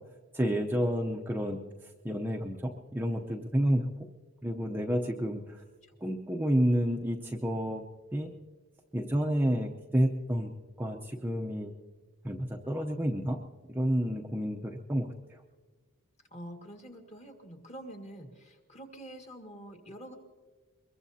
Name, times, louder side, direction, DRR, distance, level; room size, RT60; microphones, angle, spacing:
voice 1, 0.3-1.6 2.0-3.9 4.4-5.4 6.0-7.8 8.1-8.3 8.9-10.5 10.8-11.7 12.2-13.4 13.7-15.1, equal, 10° right, 1 dB, 0.7 m, -29 dB
voice 2, 16.3-20.1, right 1 dB, 30° left, 3 dB, 1.8 m, -46 dB
23.0 x 22.0 x 2.8 m, 1.4 s
head